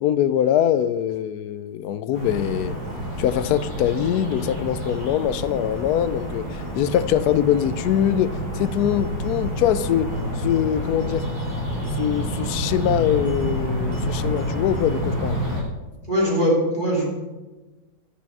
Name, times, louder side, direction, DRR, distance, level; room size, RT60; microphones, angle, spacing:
voice 1, 0.0-2.8 3.2-6.5 6.8-10.1 10.4-11.2 12.0-15.4, left 10 dB, 70° left, 14 dB, 0.9 m, -23 dB
sound 1, 2.1-15.6, equal, 60° right, 4.4 m, -28 dB
voice 2, 16.1-17.1, equal, 25° right, -5 dB, 3.7 m, -21 dB
10.5 x 8.5 x 6.0 m, 1.2 s
omnidirectional pair, 2.0 m